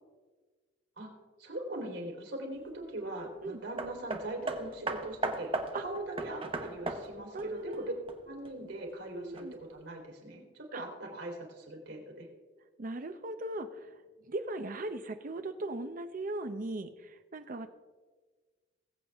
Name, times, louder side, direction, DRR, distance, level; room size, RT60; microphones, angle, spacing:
voice 1, 1.4-7.9 8.3-12.3, right 1 dB, 75° right, 0 dB, 3.4 m, -41 dB
Hammer, 3.8-8.5 9.3-9.4, right 2 dB, 30° right, 1.0 m, -37 dB
voice 2, 7.3-7.9 9.2-9.5 10.7-10.8 12.8-14.0 14.3-17.7, right 2 dB, 45° right, 9 dB, 0.6 m, -38 dB
20.5 x 8.0 x 3.5 m, 1.4 s
head